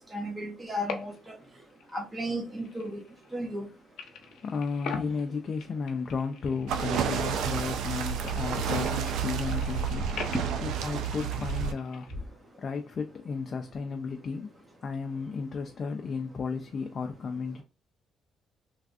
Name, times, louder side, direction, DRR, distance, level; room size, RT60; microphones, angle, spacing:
voice 1, 0.1-1.3 1.9-3.0 3.3-3.7, equal, 20° right, 0.9 m, -34 dB
sound 1, 0.7-1.5 1.7-3.7 4.0-7.5 7.8-12.1, left 6 dB, 80° left, 0.7 m, -43 dB
voice 2, 4.4-10.3 10.6-14.5 14.8-17.6, left 5 dB, 50° left, 0.4 m, -34 dB
sound 2, 6.7-11.7, right 7 dB, 85° right, 0.4 m, -30 dB
3.3 x 2.4 x 2.4 m
cardioid pair, 90°, 0 cm